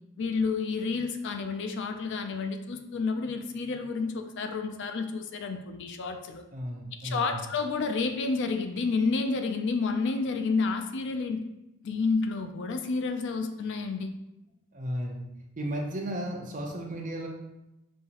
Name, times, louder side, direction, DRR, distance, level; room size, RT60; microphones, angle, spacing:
voice 1, 0.2-6.4 7.0-11.5 11.8-14.2, left 4 dB, 55° left, 7 dB, 0.4 m, -30 dB
voice 2, 6.5-7.4 14.7-15.3 15.6-17.3, right 1 dB, 35° right, 0 dB, 0.6 m, -34 dB
5.4 x 2.7 x 2.9 m, 0.92 s
head